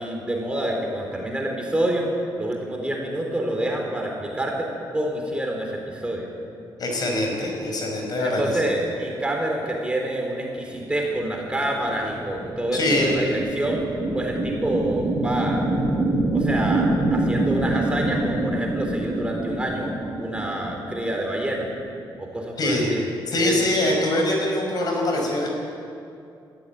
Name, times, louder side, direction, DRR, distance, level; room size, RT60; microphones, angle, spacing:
voice 1, 0.0-2.1 2.4-6.3 8.2-13.8 14.1-15.7 16.3-21.7 22.2-23.0 23.4-23.7, right 1 dB, 10° right, 0 dB, 4.0 m, -27 dB
voice 2, 6.8-8.5 12.7-13.1 22.6-22.9 23.3-25.5, left 1 dB, 50° left, 1 dB, 5.9 m, -23 dB
sound 1, 11.6-21.3, right 2 dB, 45° right, 3.7 m, -26 dB
21.5 x 14.0 x 9.4 m, 2.5 s
cardioid pair, 120°, 8 cm